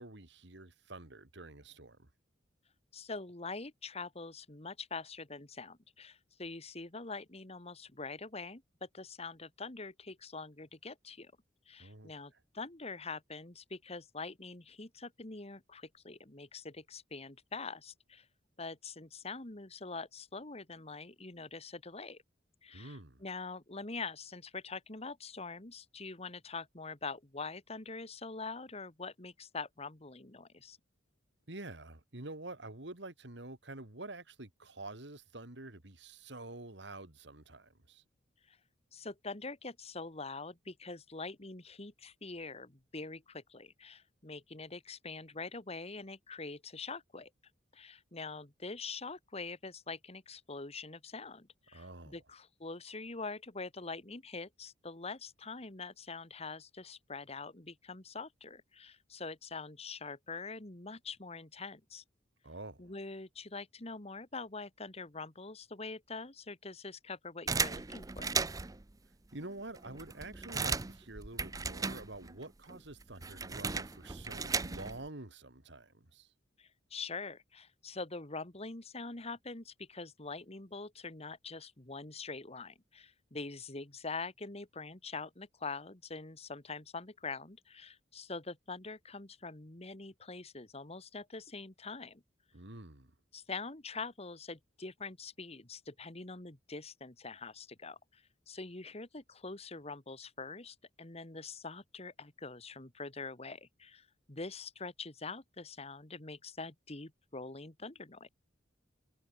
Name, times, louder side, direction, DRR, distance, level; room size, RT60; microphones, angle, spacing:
voice 1, 0.0-2.1 11.8-12.1 22.7-23.2 31.5-38.0 51.7-52.2 62.4-62.9 69.3-76.3 92.5-93.1, right 2 dB, 65° right, 2.8 m, -47 dB
voice 2, 2.9-11.3 11.7-18.3 18.6-22.2 22.6-30.8 38.5-38.6 38.9-47.3 47.7-62.0 62.8-68.3 76.6-92.2 93.3-108.3, left 4 dB, 35° left, 2.0 m, -44 dB
sound 1, 67.5-68.8 69.4-69.5 69.8-72.4 72.7-75.1, right 4 dB, 20° right, 0.6 m, -36 dB
head